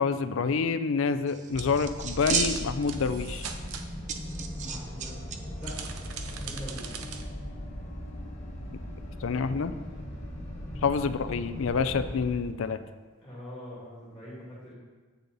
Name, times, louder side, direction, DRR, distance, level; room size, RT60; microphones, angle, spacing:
voice 1, 0.0-3.5 9.2-9.7 10.8-12.8, left 5 dB, 65° left, 11 dB, 0.4 m, -27 dB
sound 1, 1.3-3.0 3.3-3.4 4.1-5.4 5.6-5.7, right 6 dB, 35° right, 0.4 m, -32 dB
sound 2, 1.5-12.4, equal, 30° left, 1.3 m, -39 dB
sound 3, 2.2-3.8 5.6-7.2, right 7 dB, 75° right, 0.7 m, -40 dB
voice 2, 4.6-5.2 5.6-5.8 6.3-7.0 10.7-10.8 13.2-14.8, equal, 5° left, -9 dB, 2.4 m, -43 dB
8.4 x 6.6 x 4.0 m, 1.4 s
head